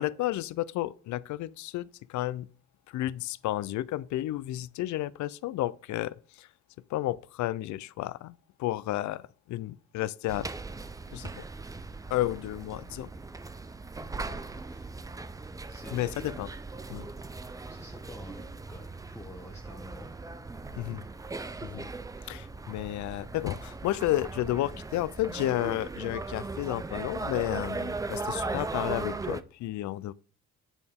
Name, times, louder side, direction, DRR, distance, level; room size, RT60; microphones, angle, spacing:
voice 1, 0.0-2.5 2.9-6.5 6.9-10.5 11.1-11.4 12.1-13.1 15.9-16.5 16.9-17.1 20.8-21.1 21.6-21.9 22.2-30.1, left 15 dB, 70° left, 0.4 m, -32 dB
sound 1, 10.3-29.4, right 3 dB, 10° right, 0.4 m, -38 dB
voice 2, 15.7-16.1 17.7-20.1 20.9-21.1, left 2 dB, 10° left, 1.0 m, -48 dB
8.9 x 4.1 x 3.6 m
cardioid pair, 90°, 30 cm